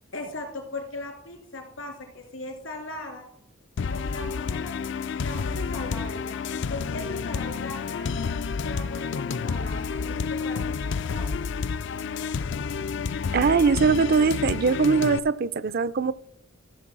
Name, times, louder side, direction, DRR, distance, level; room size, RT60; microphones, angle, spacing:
voice 1, 0.1-3.2 3.8-6.4 6.7-11.4, left 2 dB, 80° left, 3.0 m, -38 dB
sound 1, 3.8-15.2, left 5 dB, 60° left, 0.4 m, -30 dB
voice 2, 13.3-16.1, right 5 dB, 50° right, 0.4 m, -21 dB
13.5 x 6.2 x 6.0 m
head